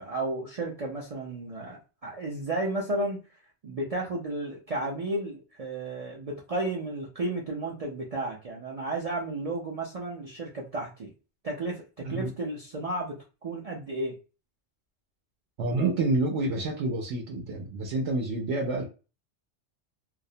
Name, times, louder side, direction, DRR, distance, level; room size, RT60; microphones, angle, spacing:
voice 1, 0.0-11.1 11.4-14.2, right 2 dB, 55° right, 0.4 m, -33 dB
voice 2, 12.0-12.3 15.6-18.9, right 2 dB, 80° right, 0.9 m, -28 dB
2.4 x 2.0 x 2.6 m
omnidirectional pair, 1.2 m